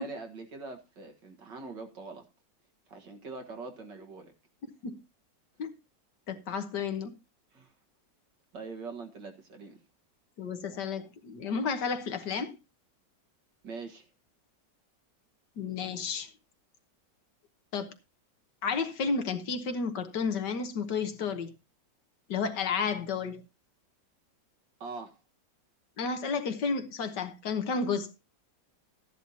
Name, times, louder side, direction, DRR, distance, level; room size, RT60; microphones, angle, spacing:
voice 1, 0.0-2.3 2.9-4.3 7.5-7.7 8.5-9.8 13.6-14.1 24.8-25.2, right 4 dB, 75° right, 2.2 m, -43 dB
voice 2, 6.3-7.1 10.4-12.5 15.6-16.3 17.7-17.9 18.6-21.5 22.3-23.4 26.0-28.1, left 5 dB, 70° left, 1.8 m, -32 dB
14.0 x 10.5 x 2.9 m
omnidirectional pair, 1.9 m